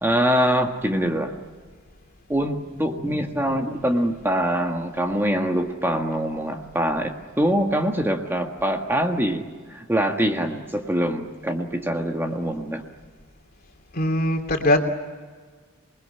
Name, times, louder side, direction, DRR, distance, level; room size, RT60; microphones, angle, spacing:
voice 1, 0.0-1.3 2.3-9.4 9.7-12.8, equal, 10° right, 3 dB, 1.7 m, -24 dB
voice 2, 13.9-14.8, left 1 dB, 45° left, 4 dB, 3.0 m, -21 dB
27.5 x 21.0 x 9.9 m, 1.5 s
head